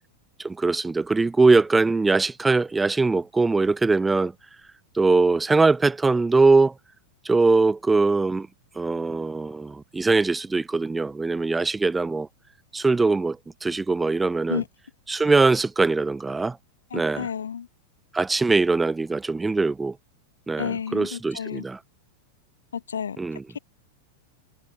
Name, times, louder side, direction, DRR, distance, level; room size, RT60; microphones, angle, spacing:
voice 1, 0.4-4.3 4.9-6.7 7.2-8.5 8.8-12.3 12.7-14.6 15.1-16.6 16.9-17.3 18.1-19.9 20.5-21.8 23.2-23.4, right 3 dB, 10° right, 0.9 m, -21 dB
voice 2, 16.9-17.7 20.6-21.7 22.7-23.2, left 7 dB, 70° left, 1.2 m, -31 dB
figure-of-eight pair, 90°, 0 cm